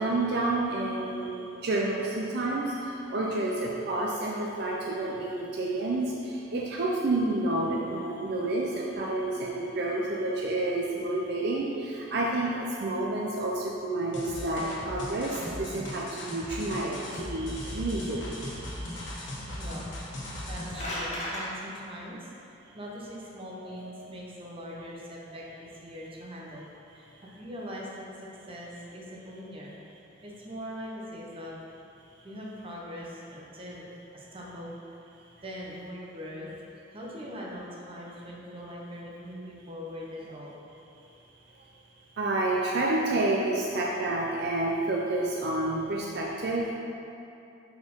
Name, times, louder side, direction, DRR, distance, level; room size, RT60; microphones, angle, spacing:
voice 1, 0.0-19.1 23.6-23.8 42.2-46.7, right 2 dB, 60° right, -3 dB, 0.5 m, -29 dB
sound 1, 14.1-20.9, left 1 dB, 80° left, 1.3 m, -38 dB
voice 2, 19.6-19.9 20.5-26.7 26.9-28.1 28.5-29.7 30.2-31.6 32.2-33.8 34.1-35.0 35.4-36.5 36.9-40.6, equal, 30° right, -4 dB, 0.9 m, -41 dB
sound 2, 20.4-21.5, left 1 dB, 40° left, 1.3 m, -34 dB
4.6 x 4.4 x 5.3 m, 2.8 s
head